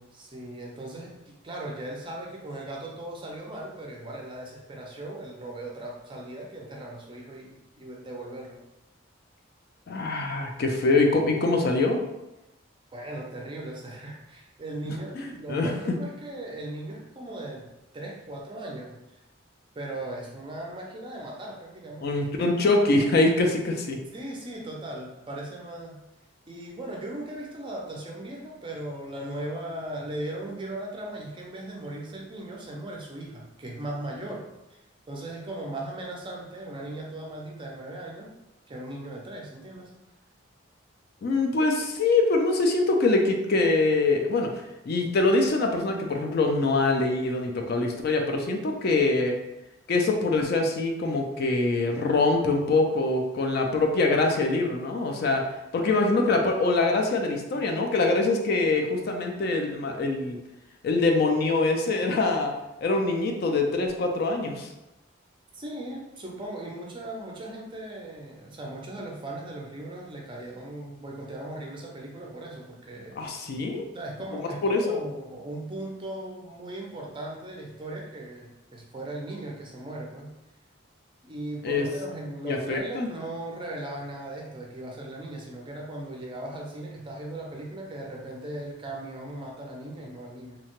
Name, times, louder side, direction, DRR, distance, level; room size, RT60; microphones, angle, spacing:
voice 1, 0.1-8.6 12.9-17.7 17.9-19.2 19.8-22.2 24.1-26.0 26.5-34.8 35.1-38.3 38.7-39.9 65.5-73.2 73.9-80.3 81.2-90.6, right 1 dB, 25° right, -1 dB, 0.4 m, -38 dB
voice 2, 9.9-12.0 14.9-15.7 22.0-24.0 41.2-49.4 49.9-55.5 55.7-60.4 60.8-62.5 62.8-64.7 73.2-73.9 74.6-75.0 81.6-81.9 82.4-83.1, left 3 dB, 50° left, 3 dB, 0.3 m, -24 dB
2.8 x 2.1 x 2.9 m, 0.94 s
head